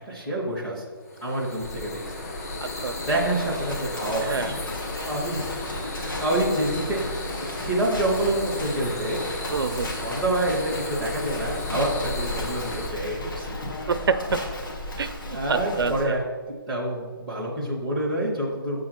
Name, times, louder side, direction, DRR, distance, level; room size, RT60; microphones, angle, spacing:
voice 1, 0.1-0.8 1.2-2.0 3.0-4.6 5.1-5.4 5.8-7.0 7.6-9.2 9.9-13.6 15.0-16.2 16.7-18.8, right 1 dB, 5° left, -7 dB, 0.5 m, -27 dB
sound 1, 1.0-12.9, left 2 dB, 40° left, 0.9 m, -35 dB
Livestock farm animals working animals, 1.6-16.0, left 1 dB, 60° left, 1.8 m, -35 dB
voice 2, 2.6-2.9 4.2-4.5 9.5-9.9 13.9-14.2 15.0-16.1, right 5 dB, 75° right, 11 dB, 0.5 m, -27 dB
7.1 x 3.8 x 5.9 m, 1.4 s
hypercardioid pair, 175°, 12 cm